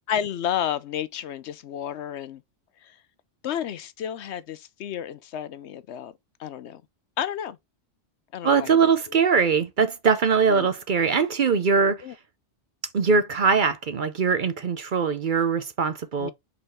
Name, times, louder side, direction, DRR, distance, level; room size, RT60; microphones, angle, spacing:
voice 1, 0.1-2.4 3.4-6.1 6.4-6.8 7.2-7.6 8.3-8.7 10.5-10.7 12.0-12.1 16.2-16.3, left 9 dB, 70° left, 0.9 m, -31 dB
voice 2, 8.4-12.0 12.9-16.3, right 5 dB, 50° right, 0.7 m, -22 dB
5.4 x 4.1 x 4.2 m
omnidirectional pair, 1.2 m